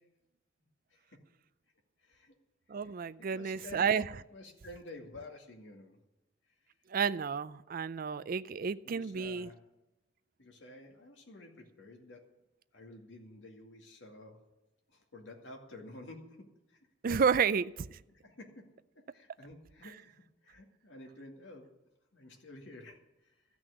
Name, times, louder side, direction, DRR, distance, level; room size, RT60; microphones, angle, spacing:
voice 1, 2.0-2.4 2.8-3.9 4.3-6.0 8.8-9.6 10.4-12.2 12.7-14.4 14.9-16.8 18.1-18.6 19.0-20.1 20.4-21.7 22.1-23.3, left 2 dB, 75° left, 1 dB, 2.3 m, -51 dB
voice 2, 2.7-4.1 6.9-9.5 17.0-18.0, right 6 dB, 50° right, 15 dB, 0.4 m, -31 dB
14.0 x 6.2 x 9.6 m, 0.97 s
head